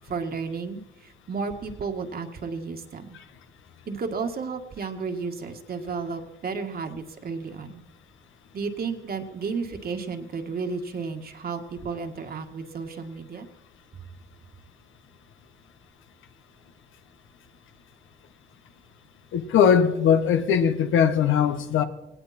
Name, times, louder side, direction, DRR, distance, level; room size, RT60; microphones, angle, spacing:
voice 1, 0.0-3.2 3.9-7.8 8.5-13.5, right 5 dB, 50° right, 1.9 m, -33 dB
voice 2, 19.3-21.8, left 8 dB, 80° left, 1.4 m, -20 dB
18.0 x 17.0 x 4.4 m
cardioid pair, 90°, 20 cm